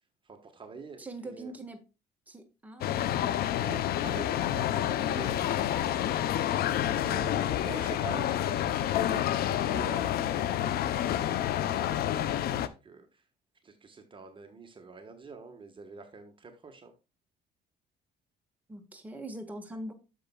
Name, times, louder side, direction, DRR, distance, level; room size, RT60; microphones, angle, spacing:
voice 1, 0.2-1.5 3.6-6.6 6.9-13.2 13.6-16.9, right 4 dB, 30° right, 6 dB, 1.3 m, -46 dB
voice 2, 1.0-1.8 2.3-3.5 18.7-19.9, right 1 dB, 10° right, 4 dB, 1.4 m, -42 dB
sound 1, 2.8-12.7, left 11 dB, 65° left, 0.7 m, -29 dB
10.5 x 6.7 x 2.3 m, 0.29 s
cardioid pair, 110°, 17 cm